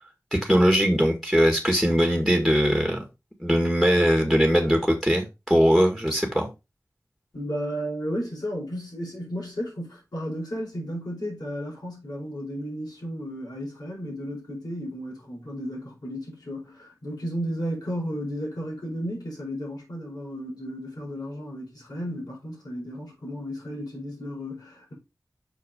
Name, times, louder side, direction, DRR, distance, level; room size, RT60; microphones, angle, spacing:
voice 1, 0.3-3.0 3.4-6.5, equal, 5° left, 1.8 m, -21 dB
voice 2, 7.3-24.9, equal, 90° left, 4.5 m, -33 dB
6.3 x 4.7 x 4.8 m
wide cardioid pair, 60°, 6 cm